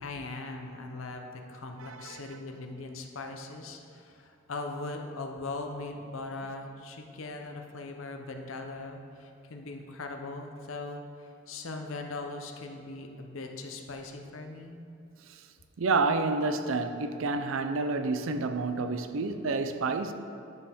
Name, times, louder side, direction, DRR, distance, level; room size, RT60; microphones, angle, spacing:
voice 1, 0.0-14.8, left 3 dB, 80° left, 0.8 m, -40 dB
voice 2, 1.8-2.4 15.3-15.4 15.8-20.1, right 3 dB, 75° right, 0.5 m, -29 dB
9.8 x 6.8 x 3.6 m
head